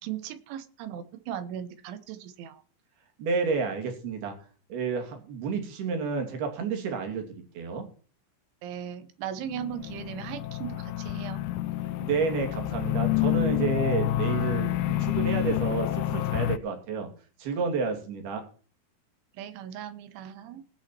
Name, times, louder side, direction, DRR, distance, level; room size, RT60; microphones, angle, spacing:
voice 1, 0.0-2.6 8.6-11.5 19.3-20.6, right 10 dB, 80° right, 12 dB, 3.6 m, -38 dB
voice 2, 3.2-4.3 4.7-7.9 12.0-17.1 17.4-18.4, right 5 dB, 60° right, 5 dB, 4.6 m, -30 dB
sound 1, 9.4-16.6, left 15 dB, 85° left, 2.3 m, -28 dB
18.5 x 8.2 x 4.6 m, 0.40 s
omnidirectional pair, 5.4 m